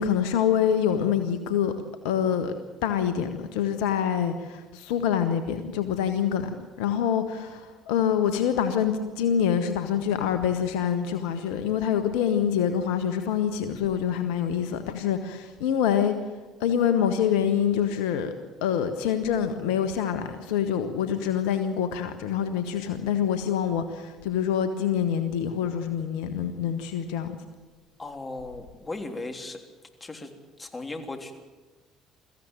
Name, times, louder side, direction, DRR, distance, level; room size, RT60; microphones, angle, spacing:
voice 1, 0.0-1.7 2.0-2.5 2.8-6.5 6.8-16.1 16.6-18.3 18.6-27.4, left 8 dB, 75° left, 9 dB, 1.4 m, -26 dB
voice 2, 28.0-29.6 30.0-30.3 30.6-31.3, left 2 dB, 25° left, 4 dB, 3.5 m, -36 dB
23.0 x 15.0 x 9.0 m, 1.3 s
hypercardioid pair, 60°, 0 cm